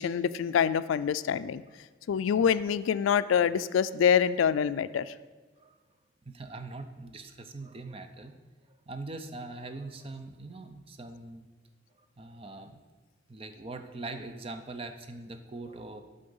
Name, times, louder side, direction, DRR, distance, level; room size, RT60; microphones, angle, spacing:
voice 1, 0.0-1.6 2.1-5.1, left 7 dB, 90° left, 15 dB, 0.3 m, -26 dB
voice 2, 6.3-8.3 8.9-11.5 12.2-12.8 13.3-16.0, right 2 dB, 30° right, 7 dB, 0.6 m, -42 dB
11.5 x 3.8 x 5.4 m, 1.3 s
head